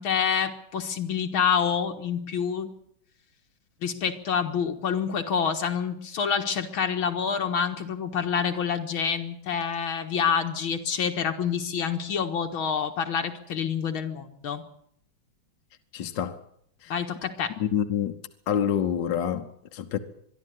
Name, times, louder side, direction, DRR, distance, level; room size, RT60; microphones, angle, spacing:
voice 1, 0.0-2.7 3.8-14.6 16.9-17.5, left 7 dB, 85° left, 2.5 m, -27 dB
voice 2, 15.9-16.4 17.6-18.1 18.5-20.0, left 9 dB, 65° left, 1.7 m, -27 dB
22.5 x 13.0 x 9.5 m
omnidirectional pair, 2.2 m